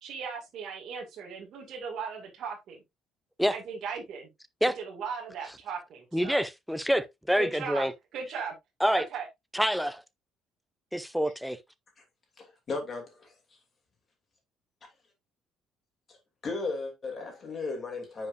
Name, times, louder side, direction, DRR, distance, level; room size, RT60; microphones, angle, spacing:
voice 1, 0.0-2.8 3.5-4.3 4.6-6.4 7.4-7.8 8.1-8.5 8.9-9.3, right 6 dB, 50° right, 2.1 m, -37 dB
voice 2, 6.1-7.9 8.8-9.1 9.5-10.0 10.9-11.6, equal, ahead, 0.5 m, -27 dB
voice 3, 12.4-13.3 16.4-18.3, left 3 dB, 25° left, 2.8 m, -35 dB
9.6 x 5.5 x 2.6 m
cardioid pair, 175°, 0 cm